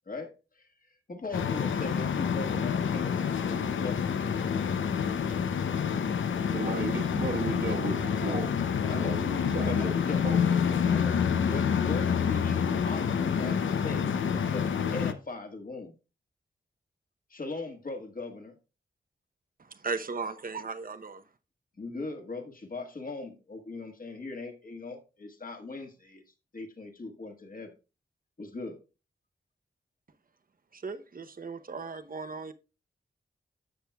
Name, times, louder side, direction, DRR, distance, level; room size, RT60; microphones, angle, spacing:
voice 1, 0.0-0.7 1.1-4.1 8.8-9.2 9.6-15.9 17.3-18.5 21.8-26.2 26.5-27.7 28.4-28.8, left 3 dB, 45° left, 1.7 m, -40 dB
sound 1, 1.3-15.1, left 7 dB, 80° left, 0.7 m, -28 dB
voice 2, 6.5-8.5 8.9-9.9 10.2-10.6, right 4 dB, 65° right, 1.4 m, -34 dB
voice 3, 19.6-21.2 30.7-32.5, right 4 dB, 45° right, 0.8 m, -37 dB
14.0 x 6.1 x 2.3 m
cardioid pair, 70°, 20 cm